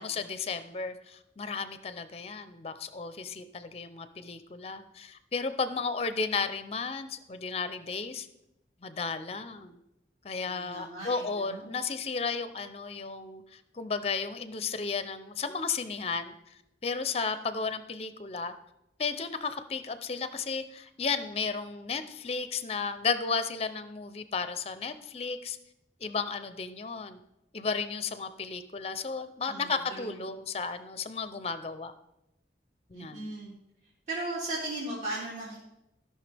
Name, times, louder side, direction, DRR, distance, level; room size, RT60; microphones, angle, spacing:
voice 1, 0.0-8.3 8.8-9.8 10.2-16.3 16.8-18.5 19.0-25.6 26.0-27.2 27.5-31.9 32.9-33.3, left 5 dB, 35° left, 11 dB, 0.5 m, -34 dB
voice 2, 10.4-11.7 29.5-30.1 32.9-33.5 34.1-35.6, right 2 dB, 40° right, -8 dB, 2.7 m, -37 dB
15.5 x 5.7 x 3.4 m, 0.87 s
head